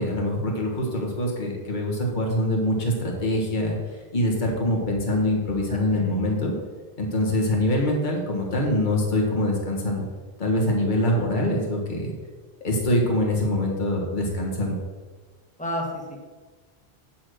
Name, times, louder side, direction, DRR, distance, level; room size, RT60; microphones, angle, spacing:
voice 1, 0.0-3.8 4.1-6.5 7.0-10.1 10.4-12.1 12.6-14.8, left 1 dB, 45° left, -1 dB, 1.6 m, -24 dB
voice 2, 5.7-6.4 15.6-16.0, left 1 dB, 5° left, -2 dB, 1.5 m, -32 dB
8.5 x 4.3 x 6.3 m, 1.4 s
omnidirectional pair, 1.1 m